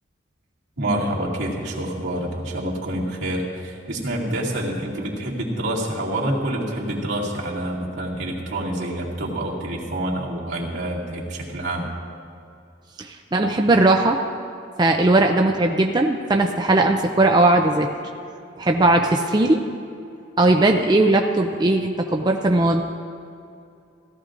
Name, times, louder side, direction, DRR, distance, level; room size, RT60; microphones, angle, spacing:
voice 1, 0.8-11.9, right 1 dB, 80° right, -5 dB, 2.3 m, -27 dB
voice 2, 13.0-14.2 14.8-17.9 18.6-19.6 20.4-22.8, right 2 dB, 20° right, 3 dB, 0.4 m, -18 dB
17.5 x 13.5 x 2.6 m, 2.6 s
head